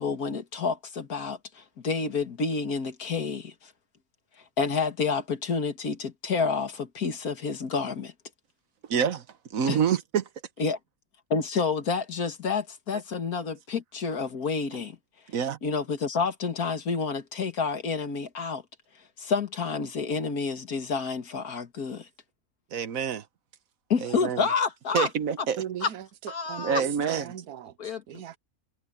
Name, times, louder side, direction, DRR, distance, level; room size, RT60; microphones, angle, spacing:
voice 1, 0.0-3.7 4.6-8.1 9.7-9.8 10.6-10.8 11.3-15.0 15.6-18.6 19.2-22.1 23.9-25.1 25.4-25.5 25.8-25.9 26.3-27.2 27.8-28.4, left 5 dB, 85° left, 2.3 m, -29 dB
voice 2, 8.9-9.2 9.5-10.2 15.3-15.6 22.7-23.2 24.0-24.4 24.9-25.6 26.6-27.3, right 7 dB, 70° right, 1.5 m, -26 dB
voice 3, 25.6-28.4, right 10 dB, 90° right, 1.3 m, -39 dB
omnidirectional pair, 1.5 m